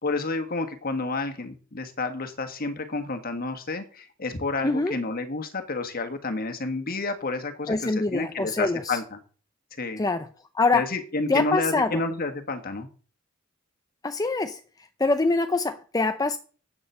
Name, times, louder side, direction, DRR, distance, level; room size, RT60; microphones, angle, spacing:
voice 1, 0.0-9.2 9.8-10.0 10.7-12.9, left 3 dB, 50° left, 1.6 m, -30 dB
voice 2, 4.6-5.0 7.7-9.0 10.0-10.3 10.5-10.9 11.3-12.0 14.0-14.6 15.0-16.4, left 3 dB, 20° left, 0.6 m, -24 dB
8.6 x 7.3 x 6.8 m
head